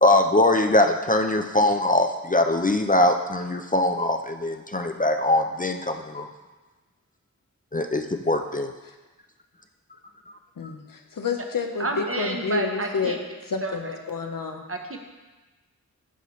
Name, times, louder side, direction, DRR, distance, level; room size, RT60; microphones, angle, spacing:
voice 1, 0.0-6.3 7.7-8.7, left 1 dB, 25° left, 5 dB, 0.4 m, -22 dB
voice 2, 10.6-13.2 13.5-14.6, left 5 dB, 80° left, 4 dB, 0.7 m, -29 dB
voice 3, 11.8-13.2 13.6-14.0 14.7-15.1, right 2 dB, 40° right, 3 dB, 0.9 m, -30 dB
11.5 x 4.2 x 3.1 m, 1.2 s
wide cardioid pair, 45°, 33 cm